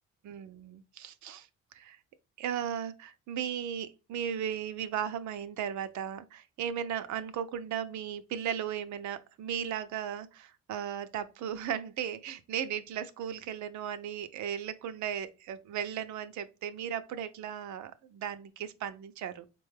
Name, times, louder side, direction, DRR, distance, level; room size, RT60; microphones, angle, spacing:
voice 1, 0.2-1.5 1.7-2.0 2.4-19.4, right 9 dB, 70° right, 0.5 m, -36 dB
4.5 x 2.2 x 3.2 m
cardioid pair, 90°, 30 cm